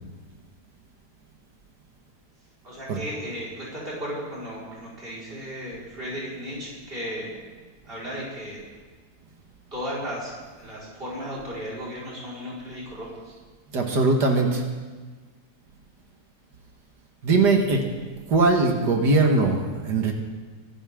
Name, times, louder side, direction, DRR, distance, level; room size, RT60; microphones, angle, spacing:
voice 1, 2.6-7.3 7.8-8.6 9.7-10.3 10.6-13.1, equal, 35° right, -7 dB, 5.2 m, -35 dB
voice 2, 13.7-14.6 17.2-17.9 18.3-20.1, right 3 dB, 80° right, 2 dB, 2.3 m, -20 dB
24.0 x 12.0 x 3.7 m, 1.4 s
omnidirectional pair, 1.8 m